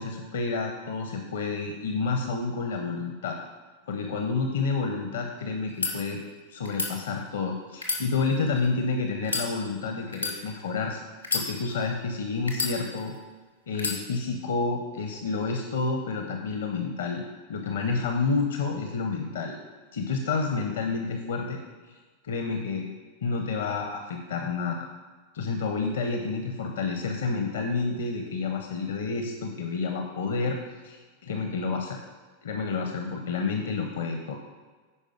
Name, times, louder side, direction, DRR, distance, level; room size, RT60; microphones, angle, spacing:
voice 1, 0.0-3.4 3.9-6.2 6.5-11.1 11.3-13.1 13.7-17.2 17.5-19.6 19.9-21.6 21.9-22.0 22.2-22.9 23.2-24.9 25.3-30.6 30.8-32.0 32.4-34.4, left 4 dB, 60° left, 4 dB, 0.8 m, -29 dB
sound 1, 5.6-5.9 6.6-6.9 7.7-8.7 9.2-9.5 10.1-10.4 11.2-11.9 12.5-13.2 13.7-14.0, left 3 dB, 85° left, 1.7 m, -30 dB
9.8 x 5.2 x 5.0 m, 1.4 s
figure-of-eight pair, 90°, 0 cm